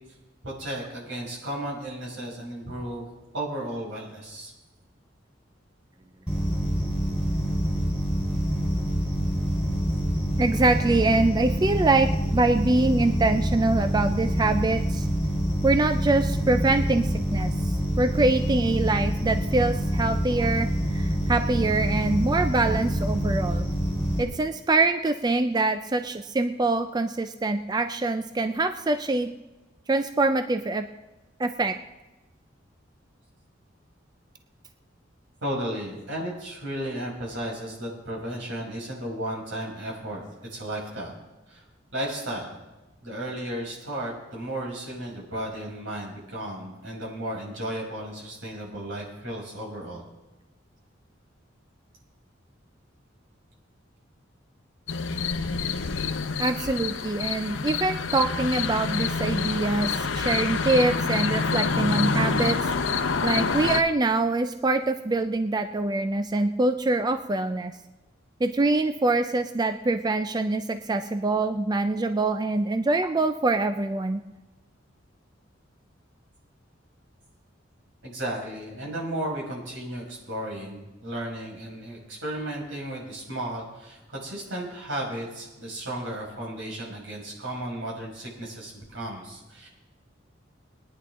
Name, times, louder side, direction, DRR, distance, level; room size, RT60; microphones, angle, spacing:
voice 1, 0.4-3.1 3.3-4.5 35.4-40.2 40.5-41.2 41.5-41.6 41.9-42.6 43.0-50.0 78.0-89.7, right 1 dB, 80° right, -3 dB, 5.4 m, -34 dB
sound 1, 6.3-24.2, equal, 5° right, 3.6 m, -26 dB
voice 2, 10.4-15.1 15.6-23.7 24.2-29.3 29.9-30.9 31.4-31.7 56.4-62.6 63.2-67.7 68.4-74.2, right 2 dB, 20° right, 9 dB, 0.4 m, -24 dB
sound 2, 54.9-63.8, left 4 dB, 75° left, 0.7 m, -27 dB
20.5 x 10.0 x 3.7 m, 1.1 s
head